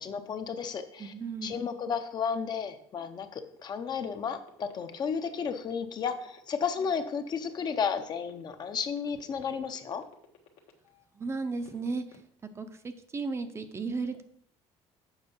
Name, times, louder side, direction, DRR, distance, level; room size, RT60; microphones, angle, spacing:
voice 1, 0.0-1.1 1.4-10.0, left 6 dB, 40° left, 8 dB, 0.7 m, -33 dB
voice 2, 1.0-1.6 11.1-12.0 12.6-14.2, right 4 dB, 25° right, 8 dB, 0.7 m, -34 dB
sound 1, 2.8-11.0 11.4-12.2, left 6 dB, 70° left, 1.3 m, -55 dB
7.3 x 5.5 x 5.4 m, 0.67 s
cardioid pair, 125°, 11 cm